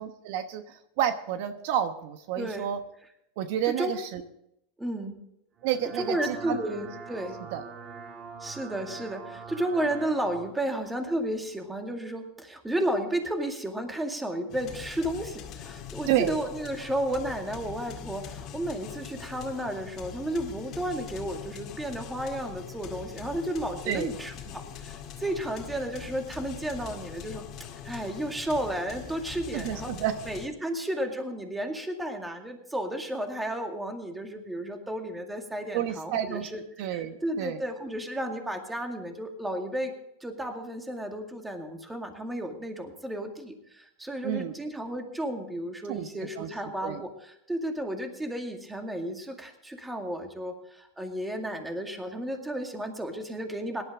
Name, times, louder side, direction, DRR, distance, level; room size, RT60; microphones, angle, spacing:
voice 1, 0.0-2.8 3.4-4.2 5.6-6.6 7.5-7.6 16.1-16.4 23.9-24.1 29.5-30.2 35.7-36.5 36.8-37.6 44.2-44.5 45.9-46.1 46.4-46.5 46.8-47.0, right 10 dB, 60° right, 9 dB, 1.0 m, -30 dB
voice 2, 2.4-2.7 3.8-3.9 4.8-5.2 6.0-7.4 8.4-27.5 27.8-29.9 30.3-36.6 36.9-39.9 40.2-53.8, right 1 dB, 10° right, 4 dB, 2.1 m, -33 dB
sound 1, 5.6-10.5, right 5 dB, 30° right, 1.6 m, -43 dB
sound 2, 14.5-30.5, left 8 dB, 40° left, 2.0 m, -42 dB
18.0 x 11.5 x 3.6 m, 0.80 s
supercardioid pair, 125°, 0 cm